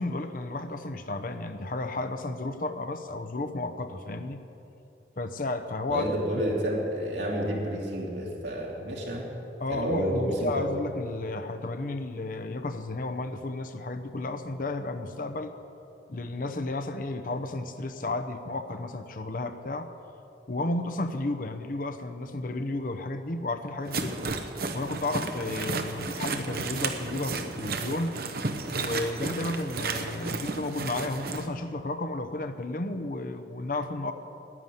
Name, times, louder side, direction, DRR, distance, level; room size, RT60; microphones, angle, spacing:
voice 1, 0.0-4.4 5.2-6.2 9.6-15.5 16.1-19.9 20.5-24.3 24.7-28.2 28.7-34.1, left 2 dB, 50° left, 7 dB, 0.8 m, -33 dB
voice 2, 5.9-9.3 9.7-10.7, equal, 80° right, -3 dB, 3.1 m, -29 dB
sound 1, 23.9-31.4, right 3 dB, 55° right, 0.9 m, -33 dB
11.0 x 10.0 x 9.3 m, 2.9 s
head